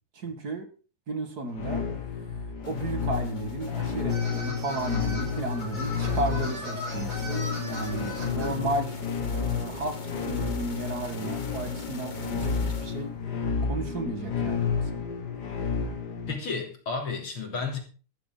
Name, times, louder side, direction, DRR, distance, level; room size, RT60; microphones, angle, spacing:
voice 1, 0.2-0.7 1.1-1.8 2.7-10.0 10.3-13.1 13.7-15.0, right 2 dB, 45° right, 2.2 m, -34 dB
sound 1, 1.5-16.4, left 6 dB, 50° left, 2.2 m, -31 dB
sound 2, 2.6-13.3, left 2 dB, 30° left, 1.0 m, -43 dB
sound 3, 4.1-8.5, equal, 80° right, 7.1 m, -38 dB
voice 2, 16.3-17.8, left 4 dB, 75° left, 4.0 m, -32 dB
13.5 x 13.0 x 3.9 m
omnidirectional pair, 2.4 m